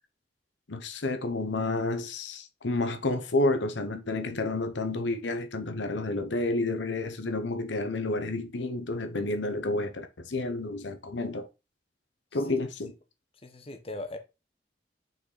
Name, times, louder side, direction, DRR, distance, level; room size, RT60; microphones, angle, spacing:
voice 1, 0.7-11.5 12.3-12.9, left 2 dB, 85° left, 0.9 m, -30 dB
voice 2, 13.4-14.2, left 2 dB, 30° left, 1.0 m, -39 dB
5.9 x 4.3 x 4.1 m
head